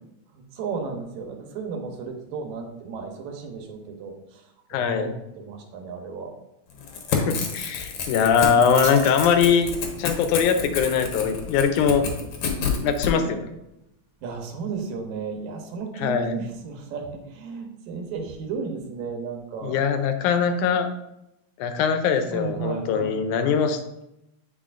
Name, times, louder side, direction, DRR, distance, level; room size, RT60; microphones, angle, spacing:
voice 1, 0.3-6.3 14.2-19.8 22.3-23.2, right 5 dB, 75° right, 2 dB, 2.2 m, -34 dB
voice 2, 4.7-5.1 7.1-9.7 10.0-12.1 12.8-13.5 16.0-16.4 19.6-20.9 21.6-23.8, left 6 dB, 85° left, 8 dB, 2.1 m, -22 dB
Crackle / Tearing, 6.7-13.1, left 6 dB, 70° left, 1.5 m, -29 dB
sound 1, 8.2-15.4, right 4 dB, 50° right, 1.3 m, -44 dB
9.1 x 4.4 x 2.5 m, 0.86 s
omnidirectional pair, 3.4 m